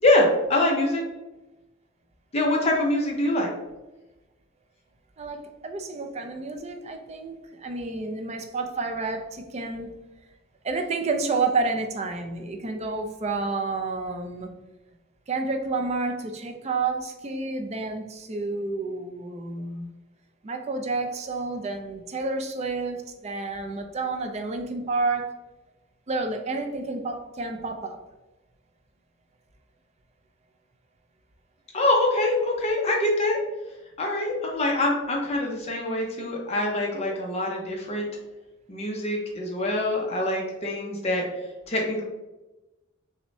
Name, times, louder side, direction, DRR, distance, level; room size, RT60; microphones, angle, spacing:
voice 1, 0.0-1.0 2.3-3.5 31.7-33.4 34.0-38.1 38.7-41.2 41.7-42.0, left 1 dB, 30° left, 0 dB, 0.6 m, -24 dB
voice 2, 5.2-9.9 10.6-14.5 15.3-19.9 20.4-25.3 26.1-28.0, right 3 dB, 30° right, 5 dB, 0.4 m, -30 dB
5.9 x 2.1 x 2.6 m, 1.1 s
head